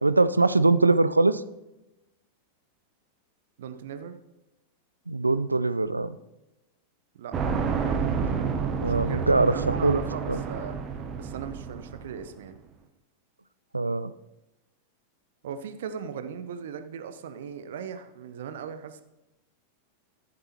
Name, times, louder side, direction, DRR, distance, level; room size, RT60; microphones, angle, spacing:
voice 1, 0.0-1.4 5.1-6.2 8.8-10.0 10.3-10.4 13.7-14.1, right 3 dB, 80° right, 15 dB, 0.4 m, -22 dB
voice 2, 3.6-4.1 7.1-7.4 8.8-10.8 11.1-12.6 15.4-19.0, right 7 dB, 60° right, 9 dB, 0.8 m, -38 dB
sound 1, 7.3-12.3, right 6 dB, 25° right, 1.0 m, -29 dB
14.0 x 7.7 x 2.9 m, 0.98 s
figure-of-eight pair, 90°, 0 cm